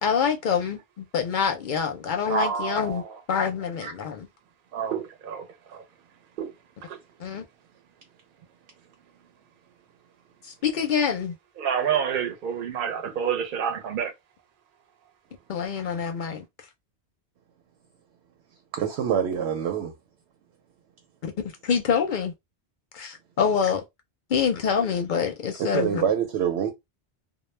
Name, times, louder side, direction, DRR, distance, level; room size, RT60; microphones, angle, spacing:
voice 1, 0.0-3.0 3.3-4.3 7.2-7.4 10.4-11.4 15.5-16.4 21.2-22.3 22.9-23.8 24.3-26.0, left 6 dB, 60° left, 0.6 m, -26 dB
voice 2, 2.3-3.1 4.7-5.9 6.4-6.5 6.8-7.0 11.6-14.1, right 7 dB, 60° right, 0.7 m, -28 dB
voice 3, 18.7-19.9 25.6-26.7, right 8 dB, 90° right, 0.9 m, -25 dB
2.2 x 2.0 x 3.1 m
omnidirectional pair, 1.1 m